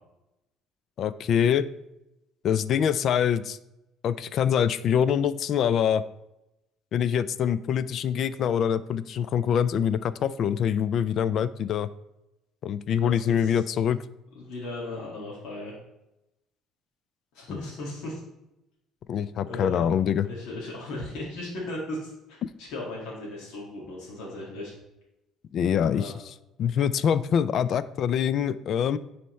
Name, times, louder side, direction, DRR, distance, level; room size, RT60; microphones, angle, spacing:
voice 1, 1.0-1.7 2.4-3.6 4.0-6.0 6.9-11.9 12.6-14.0 17.5-17.6 19.1-20.3 22.4-22.5 25.5-26.3 26.6-29.0, left 8 dB, 50° left, 16 dB, 0.3 m, -25 dB
voice 2, 13.0-13.6 14.4-15.7 17.3-18.2 19.5-19.9 20.2-24.7 25.9-26.1, left 2 dB, 75° left, -5 dB, 1.9 m, -37 dB
10.0 x 4.2 x 3.1 m, 0.91 s
cardioid pair, 135°, 0 cm